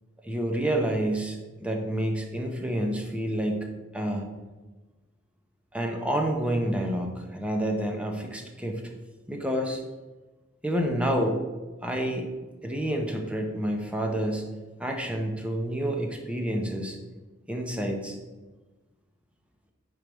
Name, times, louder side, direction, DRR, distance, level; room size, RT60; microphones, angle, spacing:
voice 1, 0.2-4.3 5.7-8.8 9.3-9.8 10.6-11.4 11.8-12.3 12.6-14.5 14.8-17.0 17.5-18.2, right 1 dB, 5° right, 2 dB, 0.8 m, -29 dB
5.1 x 4.6 x 6.2 m, 1.2 s
head